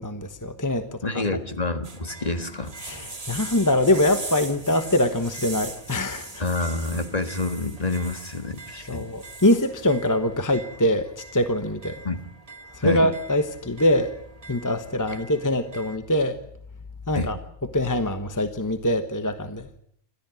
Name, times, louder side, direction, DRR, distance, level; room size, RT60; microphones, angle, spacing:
voice 1, 0.0-1.2 2.8-6.4 8.9-12.0 12.7-14.1 14.5-16.4 17.1-17.4 17.7-19.7, left 1 dB, 20° left, 1.1 m, -23 dB
voice 2, 1.0-2.7 6.4-9.1 12.0-12.2 12.8-13.0 17.1-17.3, left 2 dB, 35° left, 1.7 m, -28 dB
sound 1, 1.8-16.0, right 2 dB, 35° right, 1.9 m, -41 dB
28.0 x 14.0 x 9.1 m
omnidirectional pair, 1.1 m